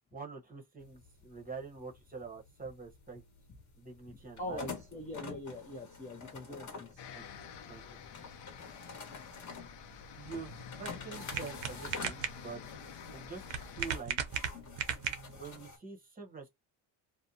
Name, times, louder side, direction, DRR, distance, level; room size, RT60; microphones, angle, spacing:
voice 1, 0.1-3.2 3.8-4.8 6.5-6.6 7.1-7.2 7.7-7.8 8.1-8.4 10.1-12.8 13.1-14.2 15.4-16.5, right 5 dB, 20° right, 0.8 m, -46 dB
sound 1, 0.8-15.8, left 4 dB, 35° left, 1.0 m, -49 dB
voice 2, 4.4-7.0, left 1 dB, 15° left, 0.4 m, -42 dB
sound 2, 7.0-13.9, left 7 dB, 60° left, 0.7 m, -49 dB
sound 3, 9.9-15.5, right 8 dB, 65° right, 0.7 m, -39 dB
2.6 x 2.1 x 2.7 m
cardioid pair, 100°, 49 cm